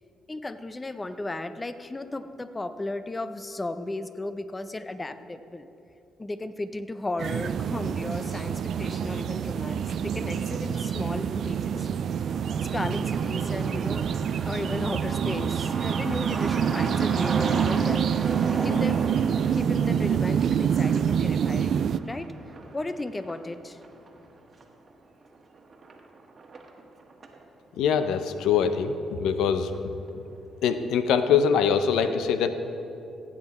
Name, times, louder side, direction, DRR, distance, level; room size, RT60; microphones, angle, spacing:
voice 1, 0.3-5.7 6.2-11.9 12.6-14.1 14.5-18.1 18.5-19.0 19.5-21.8 22.1-22.3 22.7-23.8, left 2 dB, 20° left, 11 dB, 0.6 m, -35 dB
sound 1, 7.2-22.0, right 8 dB, 65° right, 0.3 m, -26 dB
Truck, 12.2-27.4 27.8-27.9 28.1-29.0 29.3-29.4 29.7-30.1, right 3 dB, 40° right, 1.4 m, -38 dB
voice 2, 27.8-29.7 30.6-32.5, left 7 dB, 85° left, 10 dB, 0.7 m, -23 dB
16.0 x 8.9 x 4.3 m, 2.9 s
cardioid pair, 90°, 0 cm